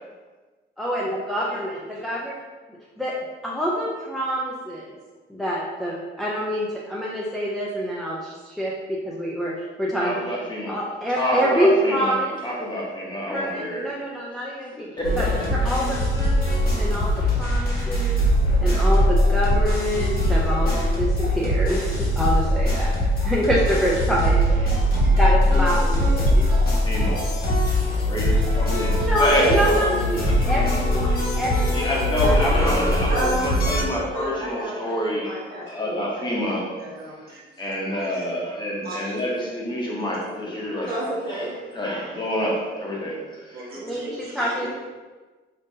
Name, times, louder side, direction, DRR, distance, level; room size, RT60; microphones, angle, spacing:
voice 1, 0.8-2.3 3.0-3.1 3.4-4.9 5.3-9.5 9.8-10.1 10.7-12.3 13.3-14.9 15.2-15.3 15.5-18.2 18.6-22.9 23.2-24.7 25.1-26.5 28.7-31.9 32.2-32.3 43.8-44.7, equal, ahead, -6 dB, 0.4 m, -26 dB
voice 2, 10.0-10.7 11.2-12.1 12.4-13.8 14.7-15.5 26.8-29.5 30.2-30.3 31.1-31.4 31.7-36.7 37.6-41.0 41.3-41.5 41.7-43.7 44.4-44.6, equal, 20° left, -4 dB, 0.8 m, -27 dB
sound 1, 15.0-33.8, equal, 45° left, 1.1 m, -21 dB
voice 3, 24.7-25.3 25.6-25.8 26.2-27.0 29.4-30.1 31.2-31.3 31.8-31.9 32.3-32.4 33.1-38.2 38.8-39.5 40.8-41.7 43.0-43.2 43.5-44.7, right 1 dB, 50° right, -7 dB, 1.2 m, -33 dB
5.3 x 2.6 x 2.6 m, 1.3 s
cardioid pair, 155°, 20 cm